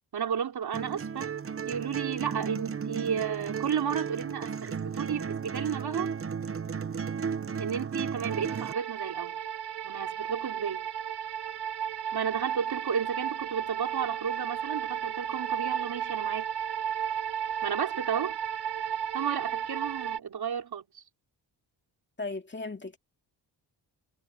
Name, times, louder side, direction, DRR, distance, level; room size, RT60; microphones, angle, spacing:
voice 1, 0.1-1.3 1.7-6.1 7.6-9.4 9.8-10.9 12.1-16.5 17.6-18.4 19.1-21.0, right 8 dB, 65° right, 3.6 m, -33 dB
sound 1, 0.7-8.7, right 6 dB, 35° right, 0.8 m, -34 dB
sound 2, 8.3-20.2, right 9 dB, 80° right, 5.0 m, -34 dB
voice 2, 22.2-23.0, left 3 dB, 25° left, 2.4 m, -36 dB
cardioid pair, 100°, 41 cm